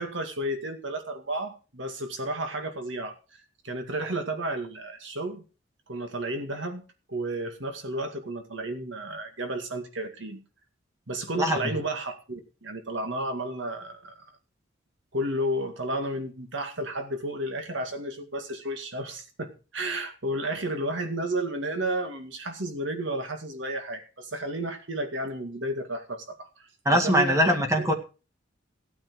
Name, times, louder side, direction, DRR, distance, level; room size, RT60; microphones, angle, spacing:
voice 1, 0.0-3.2 3.6-5.4 5.9-10.4 11.1-14.2 15.1-27.9, right 1 dB, 70° right, 6 dB, 2.2 m, -32 dB
voice 2, 11.4-11.7 26.9-27.9, equal, 15° right, 5 dB, 1.9 m, -22 dB
15.0 x 9.0 x 4.7 m, 0.34 s
head